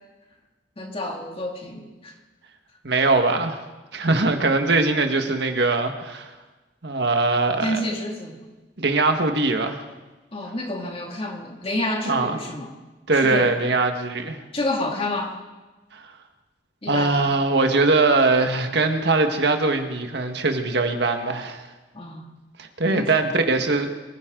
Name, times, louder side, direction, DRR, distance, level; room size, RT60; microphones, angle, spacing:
voice 1, 0.8-2.1 7.6-8.4 10.3-12.7 13.1-13.5 14.5-15.4 16.8-17.2 21.9-22.3 22.8-23.1, left 1 dB, 30° left, 1 dB, 2.4 m, -29 dB
voice 2, 2.8-3.6 3.9-6.3 6.8-7.8 8.8-9.8 12.1-12.4 13.1-14.4 15.9-16.1 16.9-21.7 22.6-23.9, right 3 dB, 65° right, 5 dB, 1.6 m, -21 dB
24.0 x 15.5 x 3.9 m, 1.2 s
head